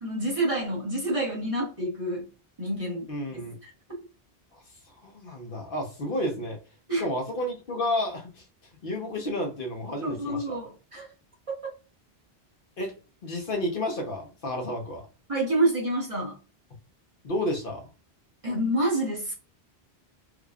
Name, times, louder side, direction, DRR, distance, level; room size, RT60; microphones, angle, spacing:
voice 1, 0.0-2.3 2.6-3.7 6.9-7.1 10.0-11.1 15.3-16.4 18.4-19.3, right 1 dB, 35° right, 1.2 m, -28 dB
voice 2, 3.1-3.6 5.0-6.6 6.9-8.3 8.8-10.6 12.8-12.9 13.2-15.0 17.2-17.9, left 1 dB, 60° left, 1.0 m, -31 dB
4.8 x 2.3 x 2.4 m
omnidirectional pair, 1.0 m